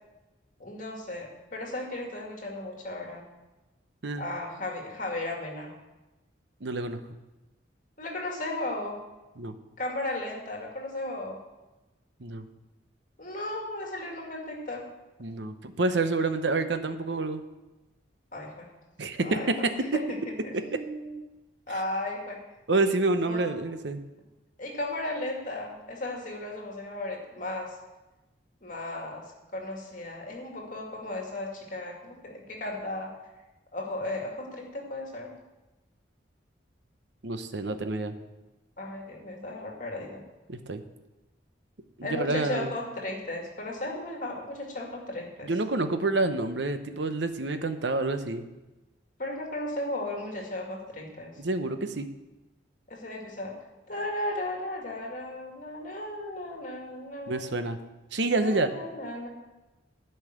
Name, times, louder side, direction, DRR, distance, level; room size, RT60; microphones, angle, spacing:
voice 1, 0.6-3.3 4.2-5.7 8.0-9.0 9.8-11.4 13.2-14.9 18.3-18.7 19.2-19.5 19.7-21.2 21.7-22.4 23.2-23.5 24.6-27.8 28.6-33.2 33.7-35.4 38.8-40.2 42.0-45.5 49.2-51.4 52.9-53.6 53.9-57.6 58.4-59.3, left 1 dB, 45° left, 0 dB, 2.2 m, -35 dB
voice 2, 6.6-7.0 9.4-9.5 12.2-12.5 15.2-17.4 19.0-20.0 20.5-20.6 22.7-24.0 37.2-38.2 40.5-40.8 42.0-42.7 45.4-48.5 51.4-52.1 57.3-57.8 58.1-58.7, right 2 dB, 70° right, 9 dB, 0.8 m, -28 dB
11.0 x 5.6 x 7.9 m, 1.1 s
head